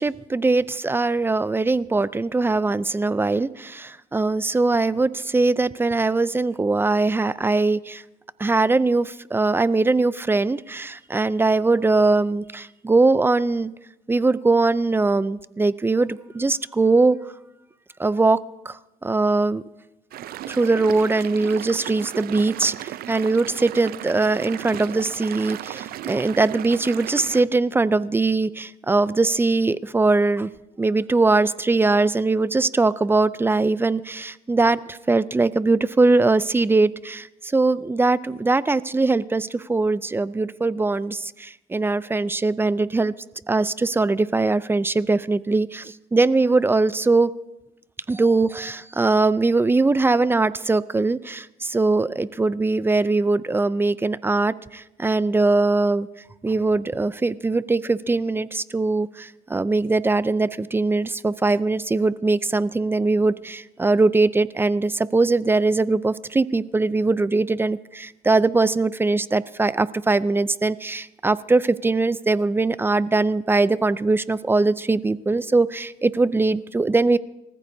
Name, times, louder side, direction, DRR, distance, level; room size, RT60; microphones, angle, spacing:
voice 1, 0.0-8.0 8.4-13.7 14.1-17.2 18.0-18.4 18.7-19.6 20.5-30.5 30.8-43.1 43.5-47.3 48.1-56.1 56.4-77.2, right 3 dB, 15° right, 17 dB, 0.4 m, -21 dB
sound 1, 20.1-27.4, right 13 dB, 65° right, 0.6 m, -35 dB
28.0 x 14.5 x 2.7 m, 0.93 s
cardioid pair, 110°, 17 cm